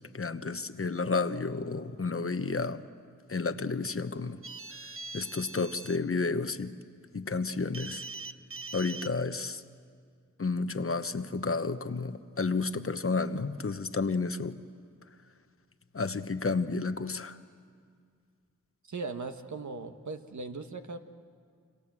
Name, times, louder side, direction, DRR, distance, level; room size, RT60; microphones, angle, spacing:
voice 1, 0.1-2.8 3.3-4.4 5.1-6.7 7.1-8.0 8.7-9.6 10.4-14.6 15.9-17.4, left 4 dB, 45° left, 10 dB, 1.1 m, -31 dB
sound 1, 4.4-6.0 7.7-9.1, right 3 dB, 40° right, 0.9 m, -42 dB
voice 2, 18.9-21.0, right 3 dB, 60° right, 6 dB, 1.5 m, -38 dB
29.5 x 26.0 x 7.6 m, 2.1 s
wide cardioid pair, 70°, 32 cm